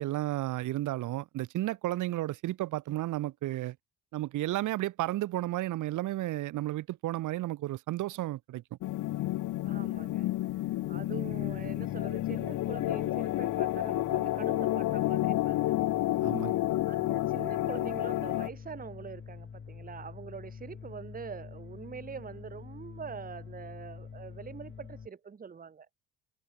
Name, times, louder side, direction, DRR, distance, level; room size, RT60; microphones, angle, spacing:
voice 1, 0.0-3.7 4.1-8.6 16.2-16.6, right 15 dB, 85° right, 1.6 m, -33 dB
sound 1, 8.8-18.5, left 16 dB, 80° left, 1.0 m, -30 dB
voice 2, 9.7-10.3 10.9-15.7 16.9-25.9, right 6 dB, 30° right, 1.2 m, -44 dB
sound 2, 11.3-25.1, left 6 dB, 40° left, 3.4 m, -46 dB
cardioid pair, 90°, 30 cm